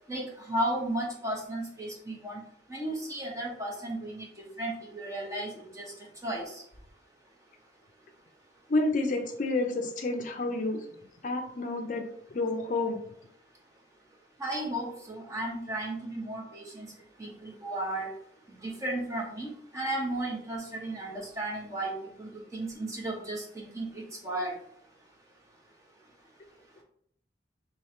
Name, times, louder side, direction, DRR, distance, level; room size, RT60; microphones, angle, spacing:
voice 1, 0.1-2.4 2.7-4.3 4.6-5.9 6.2-6.6 14.4-16.9 17.2-18.1 18.6-21.9 22.2-24.5, right 1 dB, 20° right, -2 dB, 1.0 m, -34 dB
voice 2, 8.7-10.9 11.2-12.0 12.3-13.0, left 2 dB, 45° left, 4 dB, 0.5 m, -29 dB
3.3 x 3.1 x 4.3 m, 0.66 s
head